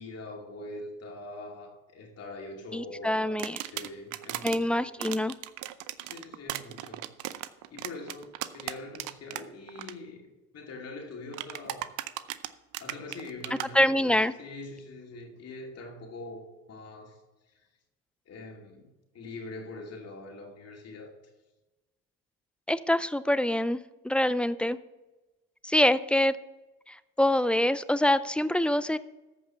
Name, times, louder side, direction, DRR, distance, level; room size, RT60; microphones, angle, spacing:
voice 1, 0.0-3.4 3.7-4.8 6.0-7.1 7.7-11.9 12.8-17.2 17.5-17.7 18.3-18.9 19.1-21.1, left 2 dB, 50° left, 2.6 m, -43 dB
voice 2, 2.7-3.6 4.4-5.3 13.7-14.3 22.7-23.8 24.0-24.8 25.6-26.4 26.9-29.0, left 1 dB, 5° left, 0.4 m, -25 dB
sound 1, 3.4-4.6 5.0-9.4 9.7-9.9 11.3-13.7, right 14 dB, 65° right, 0.7 m, -36 dB
14.0 x 5.4 x 5.7 m
supercardioid pair, 80°, 33 cm